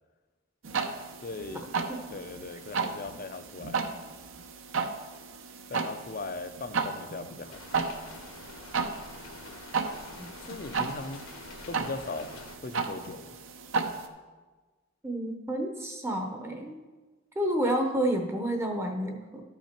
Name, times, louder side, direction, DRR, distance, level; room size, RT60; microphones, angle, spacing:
sound 1, 0.6-14.1, right 4 dB, 70° right, 0.7 m, -34 dB
voice 1, 1.2-1.8 2.1-3.8 5.7-7.6 10.4-11.3 11.7-13.4, left 3 dB, 40° left, 10 dB, 0.5 m, -39 dB
sound 2, 7.5-12.6, left 3 dB, 75° left, 1.2 m, -47 dB
voice 2, 15.0-16.8 17.4-19.4, right 1 dB, 10° right, 3 dB, 0.7 m, -30 dB
13.0 x 5.7 x 4.4 m, 1.3 s
head